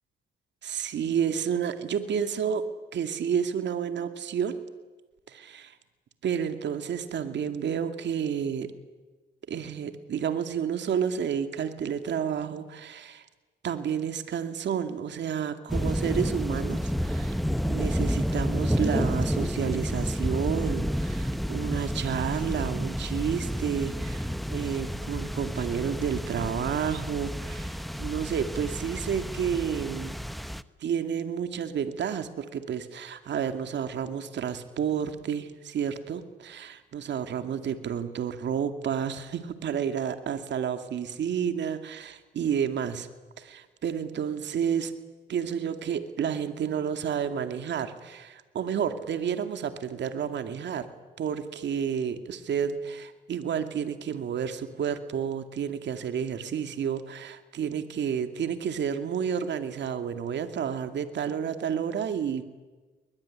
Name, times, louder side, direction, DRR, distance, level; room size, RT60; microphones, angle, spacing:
voice 1, 0.6-2.6 2.9-4.6 5.3-5.7 6.2-8.7 9.5-13.2 13.6-30.2 30.8-43.1 43.4-44.9 45.3-50.9 51.2-62.4, right 8 dB, 65° right, 8 dB, 2.4 m, -30 dB
sound 1, 15.7-30.6, equal, ahead, 0.9 m, -30 dB
22.0 x 21.5 x 9.9 m, 1.2 s
cardioid pair, 90°, 20 cm